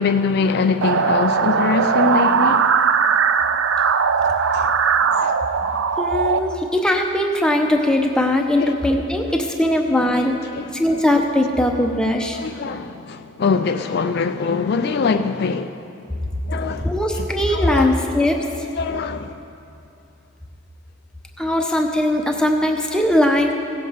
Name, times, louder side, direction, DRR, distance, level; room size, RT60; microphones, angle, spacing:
voice 1, 0.0-2.7 4.5-4.7 5.1-5.4 8.6-8.7 10.3-10.7 12.4-16.2 16.5-17.9 18.8-19.4, left 5 dB, 50° left, 0.3 m, -23 dB
sound 1, 0.8-6.4, right 6 dB, 70° right, 0.4 m, -19 dB
voice 2, 6.0-10.4 10.7-12.4 16.8-18.4 21.4-23.5, left 1 dB, 5° left, 0.7 m, -19 dB
16.5 x 7.8 x 5.0 m
head